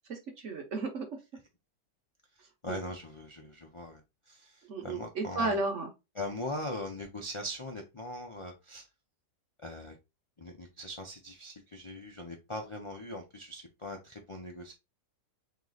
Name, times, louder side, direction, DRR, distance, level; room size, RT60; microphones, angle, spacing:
voice 1, 0.1-1.2 2.7-2.8 4.7-5.9, right 3 dB, 55° right, 3 dB, 1.2 m, -33 dB
voice 2, 2.4-5.6 6.1-8.9 9.6-10.0 10.4-14.7, left 1 dB, 45° left, 1 dB, 0.4 m, -41 dB
3.2 x 3.1 x 3.9 m, 0.24 s
omnidirectional pair, 1.6 m